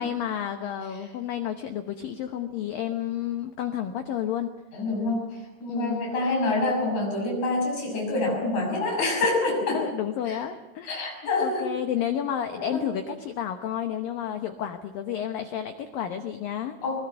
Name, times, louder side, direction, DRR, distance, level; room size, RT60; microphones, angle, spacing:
voice 1, 0.0-4.5 5.7-6.0 9.7-11.0 11.4-16.8, left 10 dB, 85° left, 7 dB, 2.0 m, -31 dB
voice 2, 4.7-9.8 10.3-10.4 10.9-11.7 12.5-12.9 16.8-17.0, left 2 dB, 40° left, 0 dB, 8.0 m, -27 dB
22.5 x 20.0 x 7.8 m, 1.1 s
omnidirectional pair, 5.6 m